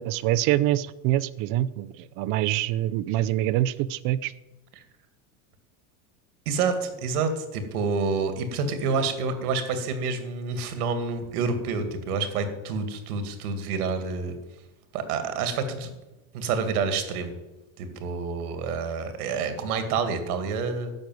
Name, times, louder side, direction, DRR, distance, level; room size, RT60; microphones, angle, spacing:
voice 1, 0.0-4.3, right 14 dB, 50° right, 17 dB, 0.6 m, -25 dB
voice 2, 6.5-14.4 14.9-15.9 16.3-17.4 17.8-20.9, right 4 dB, 85° right, 8 dB, 2.4 m, -28 dB
12.0 x 6.5 x 9.2 m, 1.0 s
supercardioid pair, 140°, 44 cm